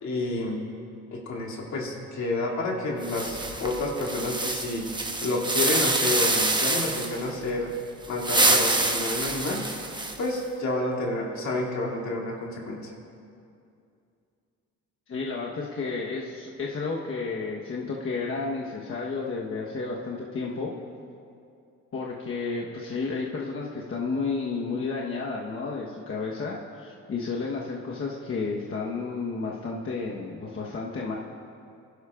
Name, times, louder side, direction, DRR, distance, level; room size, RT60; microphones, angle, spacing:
voice 1, 0.0-0.6 1.1-4.9 5.2-7.7 8.1-9.6 10.2-12.9, left 2 dB, 70° left, -3 dB, 2.7 m, -29 dB
sound 1, 3.0-7.2 8.0-10.4, right 2 dB, 15° right, 1.0 m, -26 dB
voice 2, 15.1-20.7 21.9-31.2, left 4 dB, 45° left, -3 dB, 1.2 m, -32 dB
23.5 x 11.5 x 2.5 m, 2.5 s
cardioid pair, 90°, 30 cm